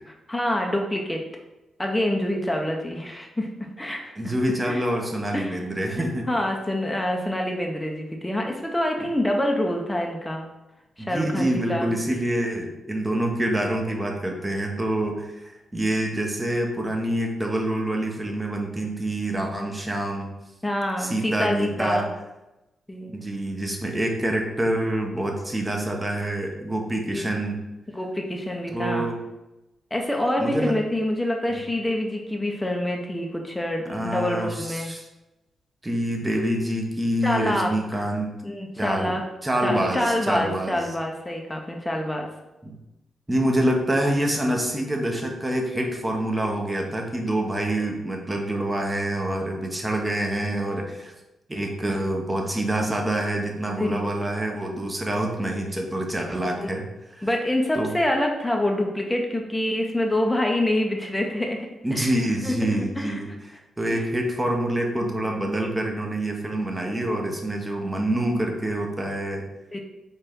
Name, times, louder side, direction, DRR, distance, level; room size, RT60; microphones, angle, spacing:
voice 1, 0.3-1.2 1.8-4.3 4.7-4.8 5.3-5.6 5.9-10.5 11.0-11.9 20.6-22.1 22.9-23.1 27.1-27.4 27.9-29.1 29.9-34.9 37.2-38.0 38.4-39.2 39.6-42.3 53.8-54.1 56.6-56.7 57.2-62.1 62.4-62.6 63.0-63.2 63.9-64.0 69.7-69.8, left 1 dB, 15° left, 1 dB, 0.7 m, -26 dB
voice 2, 4.2-6.3 9.0-9.1 11.0-20.3 21.0-22.1 23.1-27.6 28.7-29.2 30.4-30.7 33.9-35.1 35.8-38.4 38.8-39.1 39.4-40.9 42.6-42.7 43.3-51.1 51.5-56.8 57.2-57.3 57.7-58.0 61.8-69.4, right 1 dB, 20° right, 1 dB, 1.0 m, -26 dB
4.2 x 2.5 x 3.6 m, 0.97 s
supercardioid pair, 45°, 0 cm